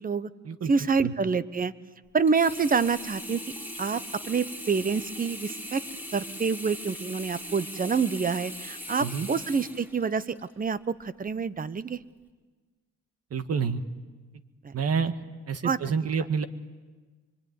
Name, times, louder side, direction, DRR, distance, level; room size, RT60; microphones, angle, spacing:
voice 1, 0.7-1.7 2.1-3.4 3.8-4.0 4.3-5.8 6.1-12.0 14.6-14.7 15.6-15.8, right 5 dB, 30° right, 16 dB, 1.0 m, -27 dB
Sink (filling or washing), 2.3-10.5 11.0-11.1, equal, 5° right, 4.6 m, -40 dB
voice 2, 13.3-13.8 14.7-15.1 15.5-16.5, right 6 dB, 55° right, 10 dB, 1.7 m, -28 dB
25.0 x 24.0 x 9.5 m, 1.3 s
cardioid pair, 90°, 30 cm